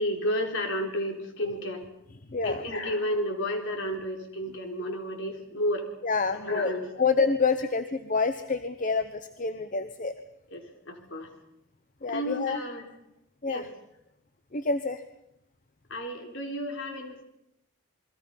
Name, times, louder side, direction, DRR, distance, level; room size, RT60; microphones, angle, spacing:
voice 1, 0.0-1.8 2.4-5.9 6.4-6.8 10.5-11.3 12.1-12.8 13.5-13.7 15.9-17.2, equal, 60° left, 3 dB, 4.2 m, -31 dB
voice 2, 2.1-2.7 6.0-10.1 12.0-12.6 13.4-13.7 14.5-15.0, left 4 dB, 40° left, 10 dB, 0.8 m, -28 dB
28.5 x 22.0 x 5.6 m, 0.82 s
head